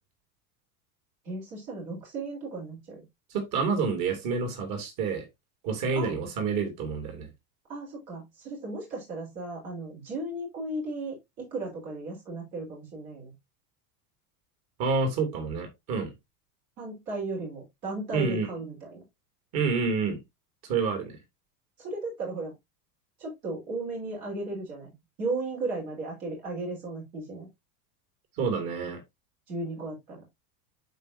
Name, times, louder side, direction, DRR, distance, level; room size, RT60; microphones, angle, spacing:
voice 1, 1.2-3.0 5.9-6.1 7.7-13.3 16.8-19.0 21.8-22.5 23.2-27.5 29.5-30.2, right 2 dB, 80° right, 4.9 m, -35 dB
voice 2, 3.3-5.2 5.6-7.3 14.8-16.1 18.1-18.5 19.5-20.2 20.7-21.2 28.4-29.0, right 4 dB, 50° right, 2.8 m, -28 dB
11.5 x 4.5 x 2.7 m
supercardioid pair, 115°, 46 cm